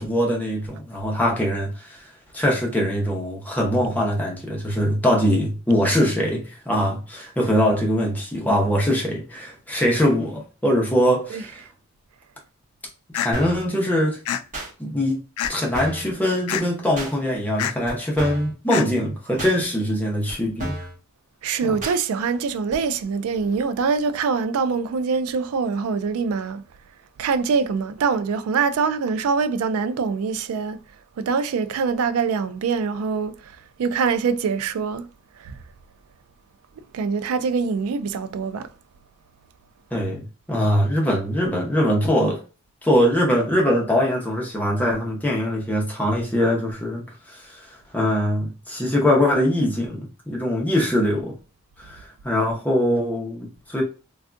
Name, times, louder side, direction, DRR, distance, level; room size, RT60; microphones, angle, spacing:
voice 1, 0.0-2.0 2.3-11.6 13.1-14.2 14.8-15.2 15.5-20.8 21.6-21.7 39.9-42.4 42.8-51.3 51.8-53.8, equal, 5° left, 0.8 m, -22 dB
sound 1, 13.1-13.3 14.2-14.4 15.4-15.7 16.5-16.6 17.6-17.7 18.7-18.9, left 9 dB, 85° left, 0.3 m, -25 dB
sound 2, 13.3-13.7 14.5-14.7 15.4-15.5 15.7-16.1 17.0-17.1 17.9-18.0 18.2-18.5 19.4-19.5 20.3-20.4 20.6-20.9 21.8-22.0 22.7-22.8, right 1 dB, 35° right, 1.2 m, -31 dB
voice 2, 21.4-26.6 27.2-30.8 31.2-35.1 35.4-35.6 36.9-38.7, right 5 dB, 75° right, 0.3 m, -24 dB
3.4 x 2.3 x 2.4 m
head